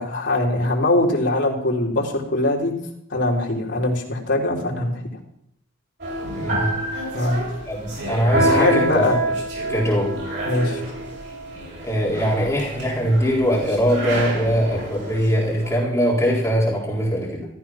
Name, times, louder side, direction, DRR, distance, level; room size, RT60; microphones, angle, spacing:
voice 1, 0.0-2.7 3.1-5.0 7.1-7.4 8.5-9.2 10.5-10.8, left 2 dB, 65° left, -1 dB, 3.6 m, -22 dB
sound 1, 6.0-15.7, right 1 dB, 60° right, 7.4 m, -27 dB
voice 2, 6.4-6.8 7.7-9.1 9.7-10.1 11.8-17.5, equal, 15° left, -4 dB, 3.9 m, -21 dB
14.5 x 14.0 x 5.9 m, 0.72 s
head